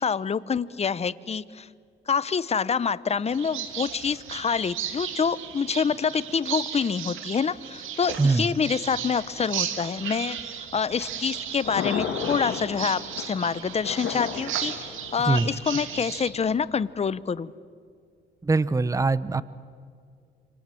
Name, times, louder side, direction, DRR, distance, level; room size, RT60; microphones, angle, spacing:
voice 1, 0.0-1.7 2.1-17.5, left 6 dB, 30° left, 17 dB, 0.8 m, -27 dB
sound 1, 3.2-16.3, right 9 dB, 85° right, 2.4 m, -35 dB
Thunder, 10.9-16.9, left 8 dB, 85° left, 2.3 m, -35 dB
voice 2, 18.4-19.4, right 3 dB, 15° right, 17 dB, 0.8 m, -22 dB
28.0 x 26.5 x 7.7 m, 2.2 s
cardioid pair, 90°, 20 cm